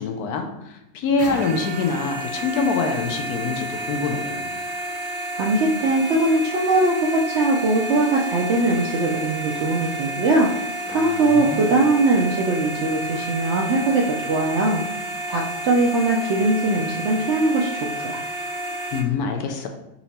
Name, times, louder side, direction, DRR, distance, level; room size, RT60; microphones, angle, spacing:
voice 1, 0.0-4.5 10.9-11.7 18.9-19.7, left 4 dB, 75° left, 4 dB, 1.1 m, -25 dB
sound 1, 1.2-19.0, right 1 dB, 40° right, 1.7 m, -30 dB
voice 2, 5.4-14.8 15.3-18.2, right 2 dB, 75° right, -1 dB, 0.6 m, -21 dB
4.4 x 2.8 x 4.1 m, 0.89 s
omnidirectional pair, 1.7 m